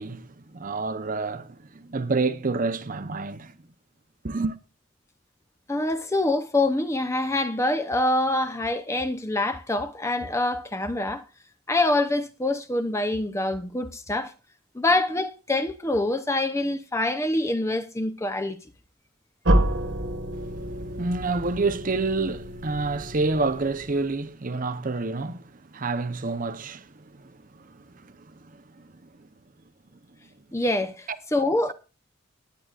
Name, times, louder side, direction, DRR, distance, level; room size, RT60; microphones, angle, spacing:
voice 1, 0.0-3.6 4.2-4.5 20.4-29.3, right 3 dB, 40° right, 0.8 m, -29 dB
voice 2, 5.7-11.2 11.7-14.3 14.7-18.6 30.5-31.7, left 2 dB, 15° left, 0.7 m, -25 dB
sound 1, 19.4-24.3, right 1 dB, 65° right, 1.4 m, -28 dB
20.0 x 9.5 x 2.4 m
head